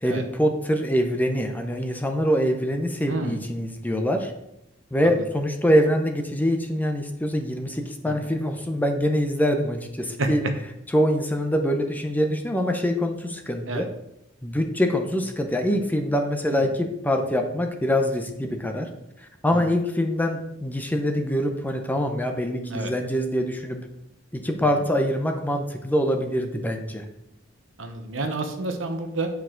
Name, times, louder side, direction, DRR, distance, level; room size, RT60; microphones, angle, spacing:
voice 1, 0.0-4.3 4.9-10.4 10.9-13.9 14.4-18.9 19.4-23.8 24.3-27.1, equal, 10° left, 4 dB, 0.6 m, -24 dB
voice 2, 3.1-3.4 5.0-5.2 8.1-8.2 10.2-10.3 13.7-13.9 16.5-16.7 19.5-19.8 22.7-22.9 27.8-29.3, right 2 dB, 70° right, 6 dB, 0.9 m, -29 dB
8.3 x 4.7 x 3.8 m, 0.84 s
head